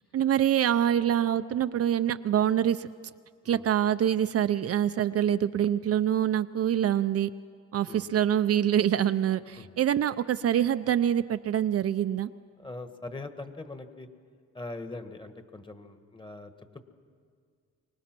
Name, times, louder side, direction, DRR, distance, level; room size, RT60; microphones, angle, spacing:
voice 1, 0.1-2.9 3.5-7.3 7.7-12.3, right 10 dB, 50° right, 11 dB, 0.5 m, -25 dB
voice 2, 12.6-14.1 14.5-16.8, left 2 dB, 15° left, 8 dB, 1.4 m, -41 dB
24.5 x 19.0 x 6.0 m, 2.1 s
cardioid pair, 90°, 30 cm